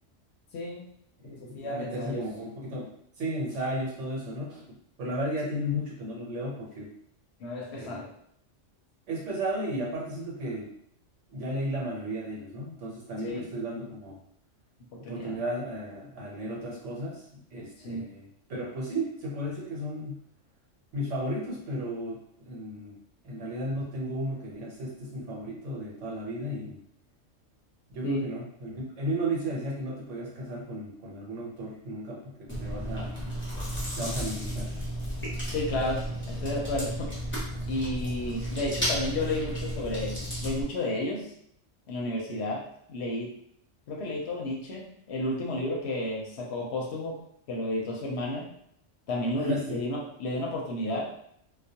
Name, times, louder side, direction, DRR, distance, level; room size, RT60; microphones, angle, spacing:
voice 1, 0.5-0.9 1.2-2.2 7.4-8.1 13.2-13.5 15.0-15.4 17.8-18.0 28.0-28.3 35.5-37.1 37.7-41.3 41.9-42.6 42.9-43.3 43.9-47.1 47.5-48.5 49.1-51.1, left 1 dB, 70° left, -2 dB, 0.8 m, -32 dB
voice 2, 1.2-2.9 3.2-6.9 7.7-8.1 9.1-10.7 11.3-14.2 15.0-20.2 20.9-23.0 23.2-26.8 27.9-33.4 33.9-34.7 49.4-49.8, equal, 75° right, -3 dB, 1.1 m, -34 dB
Chewing mastication, 32.5-40.6, equal, 15° left, 0.6 m, -33 dB
2.3 x 2.1 x 2.7 m, 0.70 s
omnidirectional pair, 1.3 m